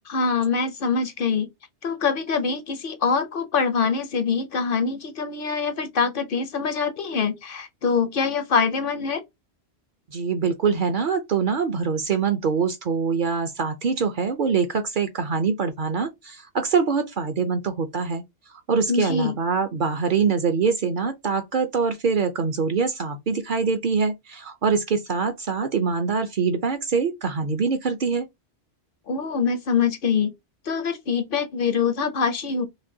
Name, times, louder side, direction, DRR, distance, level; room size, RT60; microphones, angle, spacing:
voice 1, 0.1-1.5 1.8-9.2 18.9-19.3 29.1-30.3 30.7-32.6, left 5 dB, 60° left, 0.7 m, -24 dB
voice 2, 10.1-18.2 18.5-28.3, right 5 dB, 55° right, 0.6 m, -24 dB
5.1 x 2.1 x 2.7 m
omnidirectional pair, 1.2 m